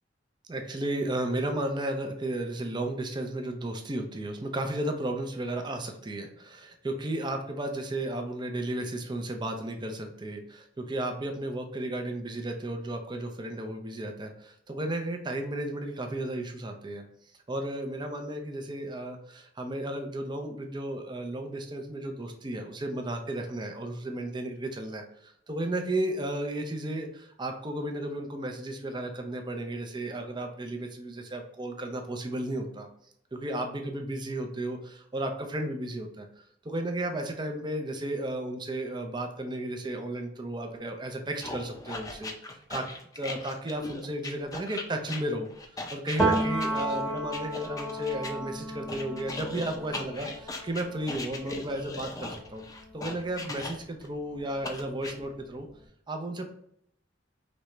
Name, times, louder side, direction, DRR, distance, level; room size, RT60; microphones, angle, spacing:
voice 1, 0.5-17.0 17.5-32.9 33.3-36.3 36.6-42.8 43.1-45.5 45.9-52.6 52.9-55.7 56.1-56.4, right 1 dB, 25° right, 4 dB, 0.6 m, -34 dB
sound 1, 41.4-48.3 48.9-54.1 54.6-55.1, left 2 dB, 20° left, 0.5 m, -39 dB
Piano, 46.2-53.8 54.2-55.7, right 2 dB, ahead, 1.2 m, -34 dB
5.2 x 3.3 x 3.0 m, 0.71 s
head